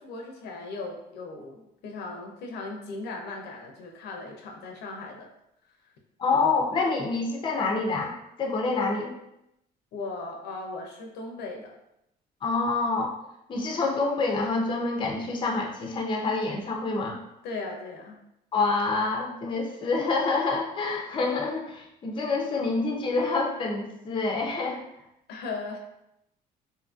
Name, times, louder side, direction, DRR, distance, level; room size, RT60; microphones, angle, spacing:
voice 1, 0.0-5.3 9.9-11.7 17.4-18.2 25.3-25.8, left 3 dB, 80° left, 1 dB, 0.6 m, -37 dB
voice 2, 6.2-8.1 8.4-9.1 12.4-13.1 13.5-17.2 18.5-24.8, left 3 dB, 30° left, 0 dB, 0.5 m, -27 dB
2.7 x 2.5 x 2.4 m, 0.82 s
cardioid pair, 110°, 17 cm